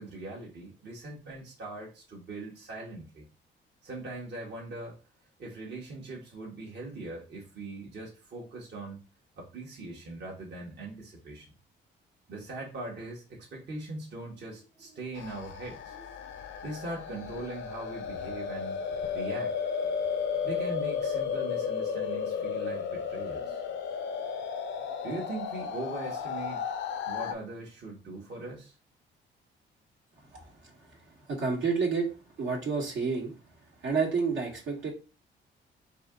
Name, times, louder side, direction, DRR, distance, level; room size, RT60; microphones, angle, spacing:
voice 1, 0.0-3.2 3.8-5.0 5.4-9.0 9.4-11.5 12.3-16.1 16.6-18.8 19.1-19.5 20.4-23.6 25.0-26.6 27.0-28.7, right 2 dB, 60° right, -3 dB, 1.4 m, -41 dB
sound 1, 15.1-27.3, left 6 dB, 65° left, 0.5 m, -33 dB
voice 2, 31.3-32.1 32.4-33.3 33.8-34.9, right 5 dB, 75° right, -2 dB, 1.7 m, -29 dB
4.2 x 2.8 x 3.6 m, 0.33 s
cardioid pair, 90°, 20 cm